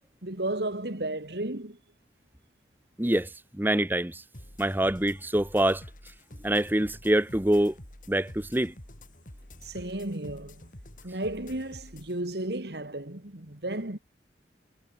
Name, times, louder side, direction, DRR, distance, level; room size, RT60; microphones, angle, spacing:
voice 1, 0.2-1.8 9.6-10.6 11.0-14.0, right 1 dB, 70° right, 2.7 m, -33 dB
voice 2, 3.0-4.2 4.6-5.8 6.4-7.7 8.1-8.7, right 1 dB, 10° right, 0.8 m, -25 dB
sound 1, 4.3-12.1, left 1 dB, 50° left, 4.2 m, -48 dB
head